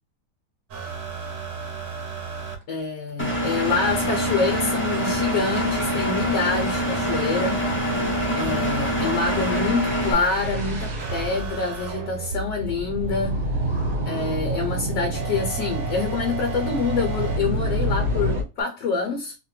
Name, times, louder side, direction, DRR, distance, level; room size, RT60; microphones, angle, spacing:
sound 1, 0.7-2.6 3.6-9.6 11.0-14.0 15.1-17.4 18.6-18.7, right 5 dB, 60° right, 1.1 m, -34 dB
sound 2, 1.7-1.9 2.2-2.3 2.6-2.8 3.1-3.2 4.6-18.4, right 1 dB, 45° right, 1.2 m, -30 dB
voice 1, 2.7-7.6 8.3-13.4 14.1-19.4, left 5 dB, 65° left, 1.0 m, -26 dB
Engine, 3.2-10.1, equal, 10° left, 0.5 m, -25 dB
2.8 x 2.1 x 3.0 m
omnidirectional pair, 1.8 m